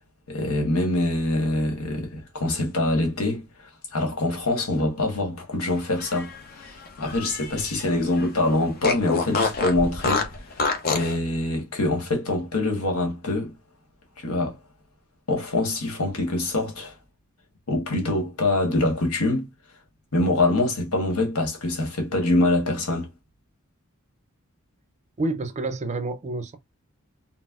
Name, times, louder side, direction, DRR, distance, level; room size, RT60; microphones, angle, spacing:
voice 1, 0.3-3.4 3.9-13.5 14.2-14.6 15.3-16.9 17.7-19.5 20.1-23.1, left 2 dB, 75° left, 1.2 m, -24 dB
Fart, 5.8-7.9 8.2-8.3 8.8-11.2, left 4 dB, 45° left, 0.7 m, -27 dB
voice 2, 25.2-26.6, right 2 dB, 30° right, 0.5 m, -28 dB
4.0 x 2.0 x 2.3 m
head